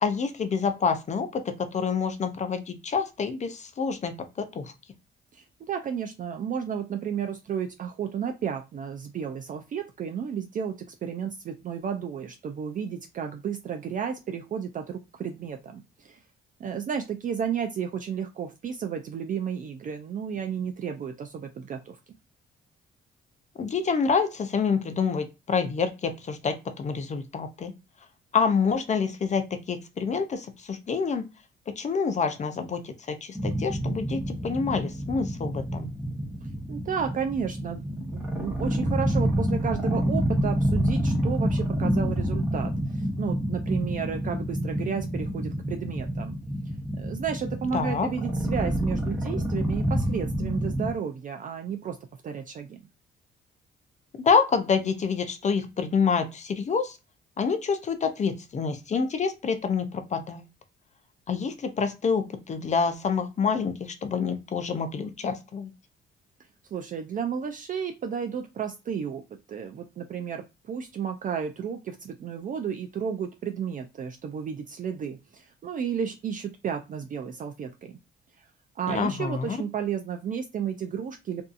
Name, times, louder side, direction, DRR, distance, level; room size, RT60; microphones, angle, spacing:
voice 1, 0.0-4.7 23.6-27.7 28.3-31.3 31.8-35.9 47.7-48.1 54.1-57.0 57.4-60.4 61.3-65.7 78.9-79.6, left 5 dB, 35° left, 8 dB, 0.5 m, -27 dB
voice 2, 5.3-16.2 16.6-22.0 36.7-46.4 46.9-52.0 52.2-52.8 66.7-69.2 69.5-77.9 78.4-78.5 78.8-81.4, right 7 dB, 40° right, 5 dB, 0.4 m, -32 dB
sound 1, 33.3-50.9, equal, 5° right, 0.9 m, -28 dB
2.6 x 2.3 x 2.4 m, 0.25 s
cardioid pair, 90°, 20 cm